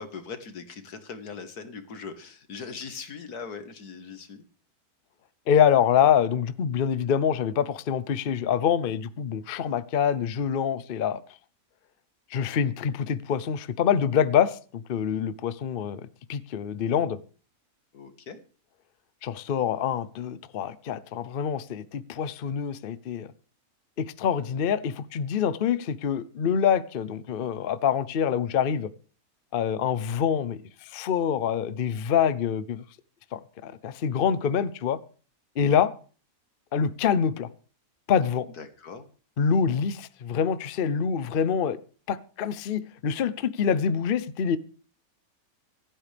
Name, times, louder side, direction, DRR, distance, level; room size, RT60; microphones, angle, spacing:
voice 1, 0.0-4.4 17.9-18.4 38.6-39.1, left 5 dB, 85° left, 2.0 m, -40 dB
voice 2, 5.5-11.2 12.3-16.0 16.3-17.2 19.2-23.3 24.0-28.9 29.5-32.8 33.3-35.0 35.6-35.9 36.7-37.5 38.1-38.5 39.4-41.8 42.1-44.6, left 8 dB, 50° left, 0.7 m, -25 dB
26.0 x 9.0 x 3.4 m
omnidirectional pair, 1.6 m